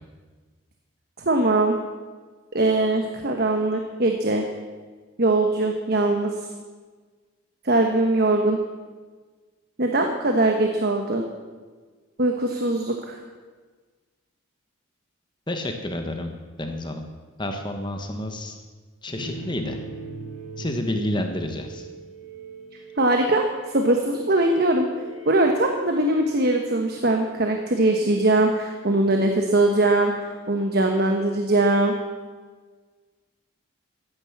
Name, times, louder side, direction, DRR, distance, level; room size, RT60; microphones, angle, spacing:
voice 1, 1.2-1.8 2.5-4.5 5.2-6.3 7.6-8.6 9.8-11.2 12.2-13.2 23.0-24.9 25.3-31.9, right 2 dB, 50° right, 3 dB, 1.2 m, -21 dB
voice 2, 15.5-17.0 17.4-18.6 19.0-19.8 20.6-21.9, left 1 dB, 20° left, 5 dB, 1.2 m, -29 dB
sound 1, 19.1-27.1, right 2 dB, 85° right, 4.9 m, -41 dB
15.0 x 10.0 x 7.3 m, 1.4 s
head